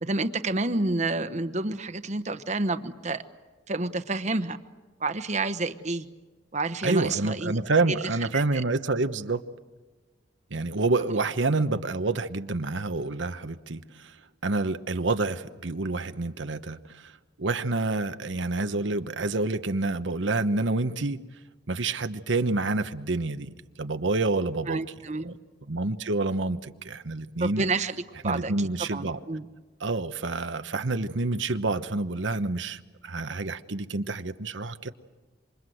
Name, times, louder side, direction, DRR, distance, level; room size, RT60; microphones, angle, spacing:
voice 1, 0.0-3.2 3.7-4.6 5.0-6.1 6.5-7.6 7.9-8.6 11.1-11.2 24.7-25.3 27.4-29.5, right 3 dB, 40° right, 11 dB, 1.1 m, -29 dB
voice 2, 6.8-9.4 10.5-14.1 14.4-16.8 17.4-21.2 21.7-23.5 23.8-24.8 25.2-25.4 25.7-27.6 28.2-29.2 29.8-34.9, right 3 dB, 90° right, 10 dB, 1.1 m, -28 dB
27.5 x 26.0 x 7.9 m, 1.3 s
head